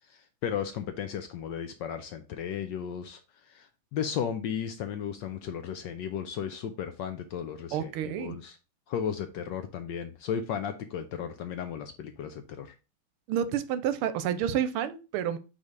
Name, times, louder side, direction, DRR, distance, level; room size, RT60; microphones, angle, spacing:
voice 1, 0.1-3.2 3.5-8.6 8.9-12.7, left 8 dB, 75° left, 8 dB, 1.1 m, -35 dB
voice 2, 7.7-8.4 13.3-15.4, right 9 dB, 85° right, 13 dB, 1.5 m, -29 dB
5.0 x 4.1 x 4.6 m, 0.31 s
omnidirectional pair, 2.4 m